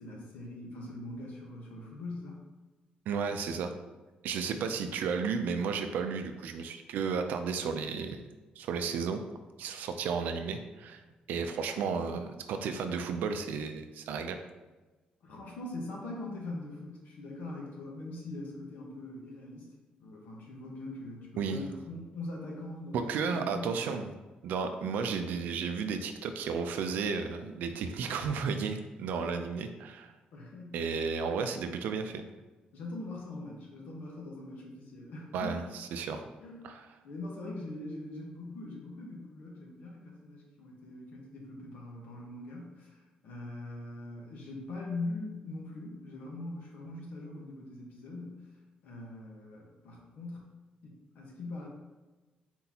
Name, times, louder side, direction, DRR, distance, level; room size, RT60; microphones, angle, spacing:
voice 1, 0.0-2.4 15.2-19.7 20.0-23.8 30.3-30.8 32.7-35.7 36.4-36.6 37.0-48.5 48.8-50.5 50.8-51.7, left 2 dB, 70° left, -2 dB, 1.2 m, -42 dB
voice 2, 3.1-3.7 4.2-8.2 8.6-9.2 9.6-11.0 11.3-14.4 21.4-21.6 22.9-24.1 24.4-30.1 30.7-32.2 35.3-36.2 36.6-36.8, right 5 dB, 80° right, 7 dB, 0.4 m, -33 dB
4.4 x 4.0 x 2.8 m, 1.2 s
cardioid pair, 175°, 3 cm